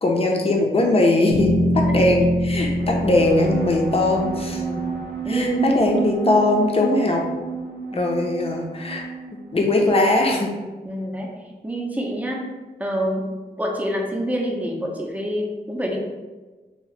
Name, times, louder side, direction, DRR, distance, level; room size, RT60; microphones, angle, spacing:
voice 1, 0.0-4.6 5.3-7.2 7.9-9.0 9.3-10.5, left 2 dB, 35° left, 1 dB, 0.6 m, -20 dB
sound 1, 1.3-5.3, equal, 75° left, 0.9 m, -24 dB
voice 2, 1.8-2.3 2.9-3.1 4.6-4.9 5.2-6.0 7.9-8.1 10.8-11.4 11.6-12.5 12.8-16.0, equal, 10° right, -1 dB, 0.6 m, -27 dB
sound 2, 2.7-10.3, right 5 dB, 90° right, 0.6 m, -31 dB
2.9 x 2.7 x 3.2 m, 1.3 s
cardioid pair, 65°, 17 cm